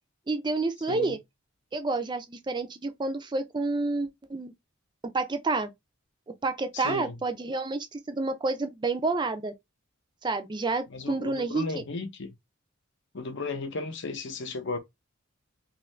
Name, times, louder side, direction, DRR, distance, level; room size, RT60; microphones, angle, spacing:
voice 1, 0.3-1.2 1.7-4.5 5.1-5.7 6.4-9.5 10.2-11.8, right 3 dB, 20° right, 0.4 m, -29 dB
voice 2, 6.7-7.2 10.9-12.3 13.1-14.8, left 3 dB, 60° left, 0.7 m, -35 dB
2.6 x 2.5 x 3.2 m
head